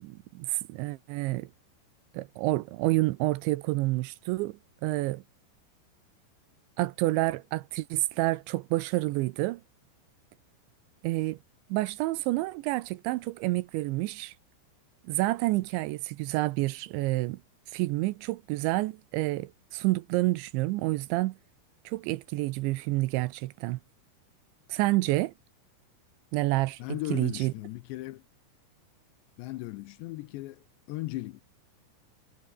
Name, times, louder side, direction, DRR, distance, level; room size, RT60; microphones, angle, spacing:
voice 1, 0.0-1.5 2.1-5.2 6.8-9.6 11.0-11.4 11.7-14.3 15.1-17.4 17.7-21.4 21.9-23.8 24.7-25.3 26.3-26.8 27.1-27.5, right 19 dB, 85° right, 2.9 m, -29 dB
voice 2, 26.8-28.2 29.4-31.4, left 18 dB, 80° left, 2.7 m, -37 dB
omnidirectional pair, 5.6 m